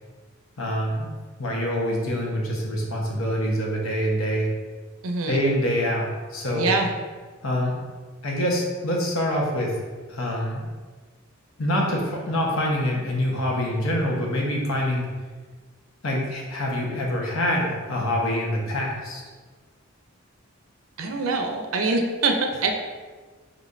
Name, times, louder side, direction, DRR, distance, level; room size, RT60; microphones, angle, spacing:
voice 1, 0.6-1.1 1.4-4.5 5.3-6.7 7.4-7.8 8.2-9.8 10.1-10.6 11.6-15.1 16.0-19.2, equal, 80° left, -2 dB, 1.0 m, -25 dB
voice 2, 5.0-5.4 6.5-6.9 21.0-22.7, right 3 dB, 80° right, 4 dB, 0.6 m, -24 dB
5.1 x 3.4 x 2.6 m, 1.4 s
head